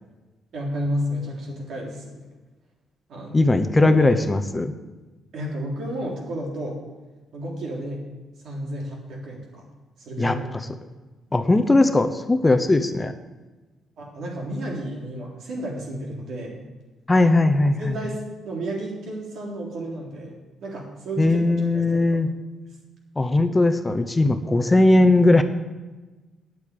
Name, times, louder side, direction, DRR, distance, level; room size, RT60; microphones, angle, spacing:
voice 1, 0.5-2.3 3.1-3.4 3.8-4.1 5.3-6.8 7.3-8.1 8.4-9.7 10.0-10.5 14.0-16.6 17.2-17.3 17.8-21.4 21.7-22.2, right 1 dB, 70° right, -2 dB, 3.7 m, -32 dB
voice 2, 3.3-4.7 10.2-10.4 11.3-13.1 17.1-17.9 21.2-22.3 23.2-25.4, left 2 dB, 20° left, 8 dB, 0.8 m, -19 dB
9.3 x 8.5 x 8.5 m, 1.2 s
cardioid pair, 90°, 0 cm